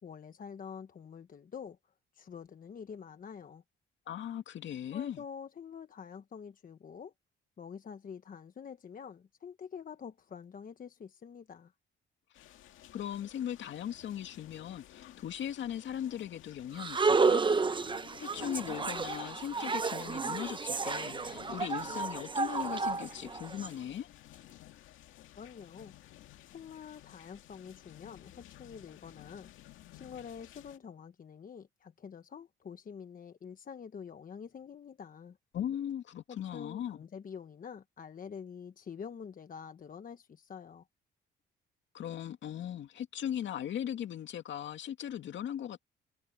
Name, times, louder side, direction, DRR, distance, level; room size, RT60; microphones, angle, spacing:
voice 1, 0.0-3.6 4.9-7.1 7.6-11.7 25.4-25.9 26.5-29.5 29.9-35.4 36.3-40.9, left 7 dB, 45° left, 1.2 m, -47 dB
voice 2, 4.1-5.2 12.9-17.4 18.2-24.1 35.5-37.0 41.9-45.8, left 10 dB, 70° left, 2.4 m, -38 dB
sound 1, 12.3-30.8, left 13 dB, 85° left, 2.0 m, -54 dB
sound 2, 16.8-23.7, right 4 dB, 25° right, 0.9 m, -31 dB
cardioid pair, 90°, 20 cm